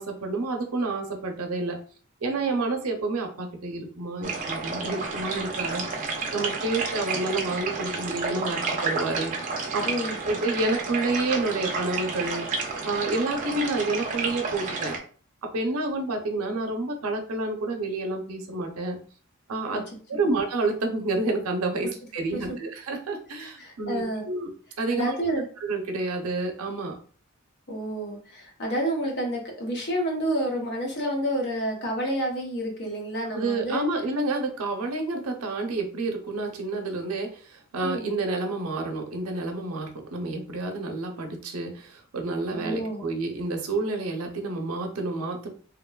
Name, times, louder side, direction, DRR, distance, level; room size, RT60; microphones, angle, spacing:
voice 1, 0.0-1.8 2.2-5.9 6.3-9.3 9.7-9.9 10.3-12.5 12.8-15.0 15.4-19.0 19.5-19.8 20.1-24.5 24.8-25.1 25.6-27.0 33.3-45.5, right 2 dB, 90° right, 4 dB, 0.6 m, -29 dB
sound 1, 4.2-15.0, right 4 dB, 35° right, 0.5 m, -31 dB
voice 2, 9.8-10.2 19.7-19.8 20.2-20.3 22.3-22.4 23.4-24.3 24.9-25.4 27.7-33.8 37.8-38.1 42.5-43.0, right 1 dB, 55° left, 0 dB, 0.8 m, -29 dB
2.9 x 2.2 x 2.3 m, 0.42 s
head